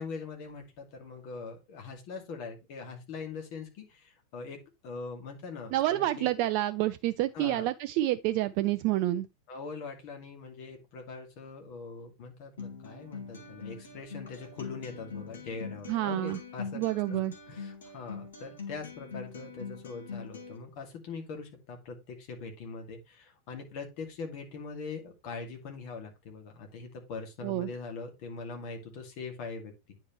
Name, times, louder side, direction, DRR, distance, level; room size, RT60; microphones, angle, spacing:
voice 1, 0.0-4.6 4.8-6.3 7.3-7.7 9.5-16.8 17.1-17.2 17.5-30.0, left 4 dB, 45° left, 2.3 m, -42 dB
voice 2, 5.7-9.3 15.9-16.4 16.7-17.3 27.4-27.7, right 15 dB, 45° right, 0.4 m, -28 dB
Acoustic guitar, 12.6-20.6, left 5 dB, 65° left, 1.7 m, -43 dB
9.6 x 4.5 x 3.1 m
figure-of-eight pair, 90°, 0 cm